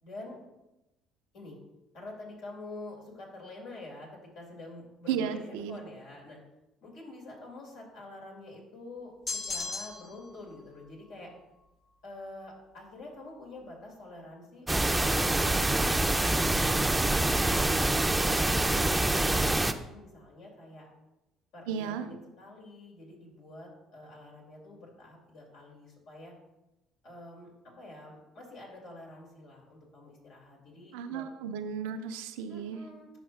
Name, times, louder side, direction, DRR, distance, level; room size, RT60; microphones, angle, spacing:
voice 1, 0.0-0.4 1.3-1.6 1.9-6.4 6.8-11.3 12.0-15.0 17.6-20.9 21.5-26.3 27.0-31.3 32.5-33.1, left 2 dB, 75° left, -1 dB, 2.3 m, -47 dB
voice 2, 5.1-5.8 21.7-22.1 30.9-32.8, right 7 dB, 90° right, 9 dB, 0.4 m, -34 dB
sound 1, 9.3-10.3, left 4 dB, 45° left, 0.9 m, -35 dB
sound 2, 14.7-19.7, right 2 dB, 10° right, 0.5 m, -26 dB
11.5 x 5.5 x 2.4 m, 0.96 s
supercardioid pair, 70°, 0 cm